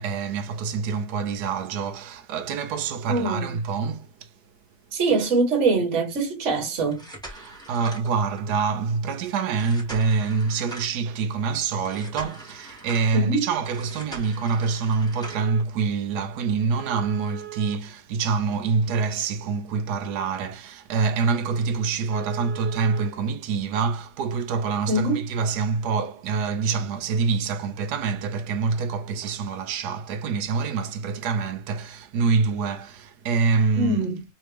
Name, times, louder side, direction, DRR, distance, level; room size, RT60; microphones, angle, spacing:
voice 1, 0.0-4.3 7.3-34.0, right 5 dB, 80° right, 1.2 m, -26 dB
voice 2, 3.1-3.6 4.9-7.0 13.1-13.5 24.9-25.3 33.8-34.2, right 3 dB, 50° right, 1.4 m, -23 dB
sound 1, 6.9-8.6 9.5-11.1 11.8-13.1 13.6-15.6 16.8-18.6 19.1-19.2 19.7-19.8 20.3-20.4 20.7-20.8 21.2-21.3 21.6-21.7 22.1-23.1 24.2-24.3, right 5 dB, 5° left, 1.0 m, -41 dB
3.3 x 3.2 x 3.2 m
omnidirectional pair, 1.7 m